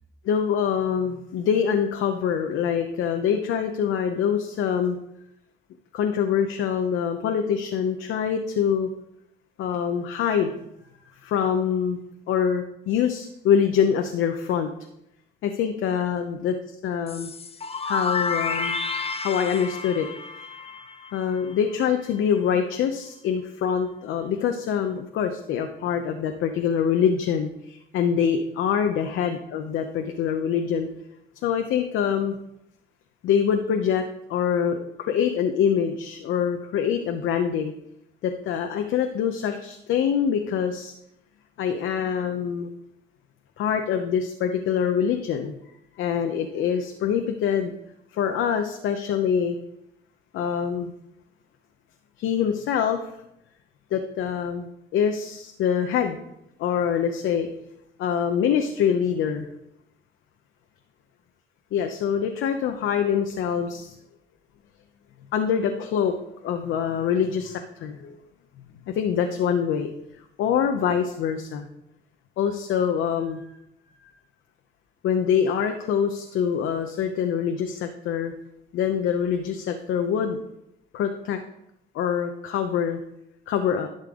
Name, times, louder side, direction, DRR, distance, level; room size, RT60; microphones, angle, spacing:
voice 1, 0.2-5.0 5.9-8.9 9.6-10.5 11.2-12.0 12.3-14.7 15.4-16.5 16.8-17.3 17.8-18.8 19.2-20.1 21.1-30.9 31.4-32.3 33.2-34.0 34.3-37.7 38.2-40.9 41.6-42.7 43.6-45.7 46.0-47.7 48.1-49.6 50.3-50.9 52.2-53.0 53.9-54.7 54.9-56.2 56.6-57.5 58.0-59.5 61.7-64.0 65.3-66.1 66.4-68.2 68.9-69.9 70.4-71.7 72.4-73.5 74.0-74.1 75.0-78.3 78.7-80.4 80.9-81.4 81.9-83.0 83.5-83.9, left 8 dB, 85° left, 6 dB, 0.8 m, -24 dB
sound 1, 17.1-21.8, left 4 dB, 30° left, 0.6 m, -30 dB
11.5 x 6.6 x 3.7 m, 0.82 s
cardioid pair, 90°, 20 cm